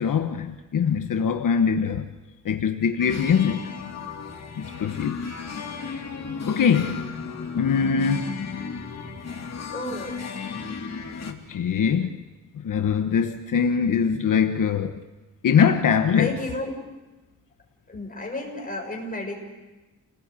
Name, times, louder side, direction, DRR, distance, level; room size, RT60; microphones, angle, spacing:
voice 1, 0.0-2.1 2.4-3.7 4.6-5.2 5.9-6.0 6.4-7.1 7.5-8.4 11.2-12.2 12.5-15.0 15.4-16.3, left 7 dB, 80° left, 1.2 m, -23 dB
sound 1, 3.0-11.3, left 5 dB, 55° left, 2.7 m, -33 dB
voice 2, 9.7-10.1 16.1-16.7 17.9-19.4, left 1 dB, 25° left, 6.9 m, -32 dB
29.0 x 19.5 x 8.4 m
wide cardioid pair, 130°, 32 cm